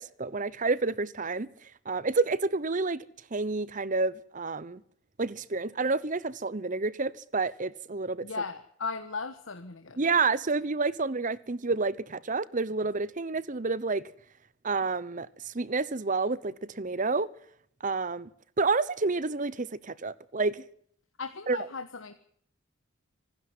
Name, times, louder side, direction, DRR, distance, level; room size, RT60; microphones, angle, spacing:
voice 1, 0.0-1.5 1.9-3.0 3.3-4.8 5.2-8.3 10.0-14.0 14.6-17.3 17.8-18.3 18.6-20.6 21.5-21.6, right 3 dB, 40° right, 0.9 m, -29 dB
voice 2, 8.2-10.0 21.2-22.1, left 4 dB, 70° left, 1.4 m, -36 dB
25.5 x 12.5 x 9.5 m
head